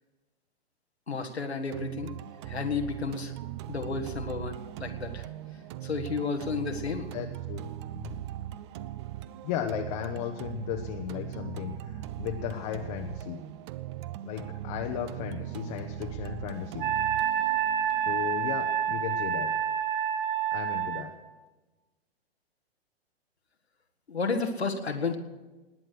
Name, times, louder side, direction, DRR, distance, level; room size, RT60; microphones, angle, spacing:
voice 1, 1.1-2.1 2.4-3.3 3.7-5.3 5.8-7.1 24.1-25.2, left 4 dB, 80° left, 4 dB, 1.6 m, -32 dB
sound 1, 1.7-19.7, right 13 dB, 30° right, 0.5 m, -40 dB
voice 2, 6.9-7.7 8.0-8.2 9.4-13.4 14.2-16.9 18.1-19.5 20.5-21.1, left 10 dB, 35° left, 4 dB, 0.9 m, -35 dB
Wind instrument woodwind instrument, 16.8-21.1, right 9 dB, 50° right, 1.4 m, -28 dB
19.5 x 9.0 x 6.5 m, 1.2 s
figure-of-eight pair, 115°, 32 cm